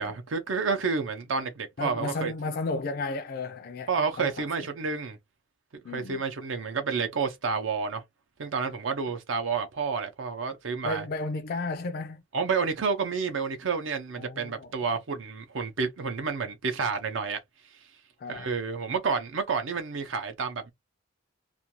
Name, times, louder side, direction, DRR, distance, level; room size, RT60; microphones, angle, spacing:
voice 1, 0.0-2.3 3.9-5.2 5.9-8.0 8.4-11.0 12.3-17.4 18.3-20.7, right 5 dB, 80° right, 0.6 m, -30 dB
voice 2, 1.8-3.9 4.2-4.4 5.8-6.2 10.8-12.2 14.2-15.0 18.2-18.5, left 3 dB, 50° left, 0.4 m, -33 dB
2.5 x 2.2 x 2.8 m
head